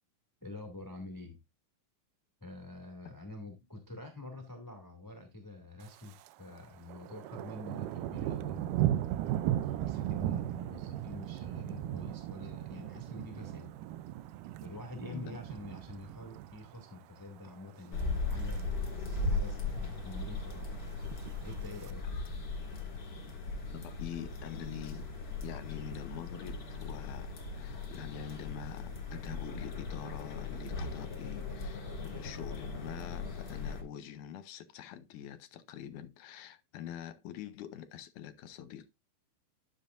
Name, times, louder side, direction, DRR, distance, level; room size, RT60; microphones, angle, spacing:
voice 1, 0.4-1.4 2.4-13.7 14.6-20.7 21.4-22.0, left 2 dB, 10° left, 1.4 m, -47 dB
Thunder, 5.8-6.3 6.6-17.0 17.4-17.7 18.2-18.6 18.9-19.0 19.1-19.2 19.6-20.2 21.0-21.9, right 13 dB, 80° right, 2.0 m, -36 dB
sound 1, 17.9-33.8, left 3 dB, 35° left, 2.2 m, -38 dB
voice 2, 23.7-25.1 25.4-38.9, left 10 dB, 70° left, 2.1 m, -45 dB
12.0 x 7.2 x 2.6 m
omnidirectional pair, 4.1 m